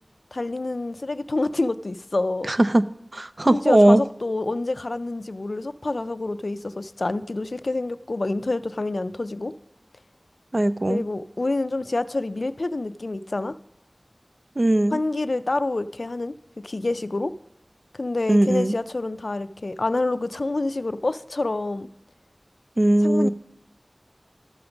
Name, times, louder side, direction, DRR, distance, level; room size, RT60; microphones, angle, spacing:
voice 1, 0.3-2.5 3.5-9.5 10.9-13.5 14.9-16.3 16.6-17.3 17.9-21.9 23.0-23.3, left 2 dB, 75° left, 0.3 m, -27 dB
voice 2, 2.5-2.8 3.1-4.0 10.5-11.0 14.6-15.0 18.3-18.8 22.8-23.3, right 1 dB, 50° right, 0.4 m, -19 dB
12.5 x 5.1 x 5.9 m
wide cardioid pair, 45°, 0 cm